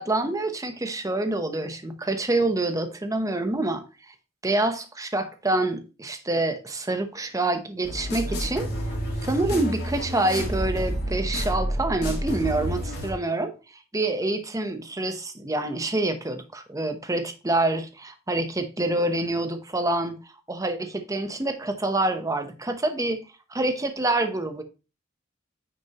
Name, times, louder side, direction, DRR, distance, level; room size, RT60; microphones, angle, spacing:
voice 1, 0.0-3.8 4.4-8.7 9.2-13.5 13.9-20.2 20.5-23.2 23.5-24.6, right 2 dB, 15° right, 0.9 m, -26 dB
sound 1, 7.8-13.1, equal, 55° left, 3.0 m, -29 dB
9.2 x 6.2 x 2.9 m
head